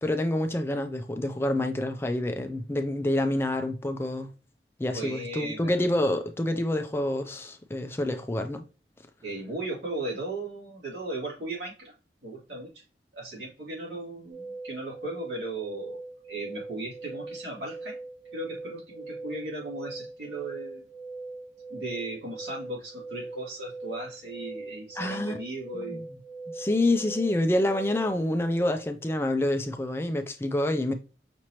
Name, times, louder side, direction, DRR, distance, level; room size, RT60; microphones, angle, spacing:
voice 1, 0.0-4.3 4.8-8.7 25.0-25.4 25.7-26.1 26.5-30.9, left 1 dB, 15° left, 0.4 m, -27 dB
voice 2, 4.9-5.8 9.2-11.9 12.2-12.8 13.1-16.0 16.3-18.0 18.3-20.8 21.7-26.0, right 2 dB, 85° right, 2.4 m, -37 dB
sound 1, 14.3-28.2, right 3 dB, 65° right, 2.4 m, -41 dB
6.0 x 2.9 x 3.0 m
head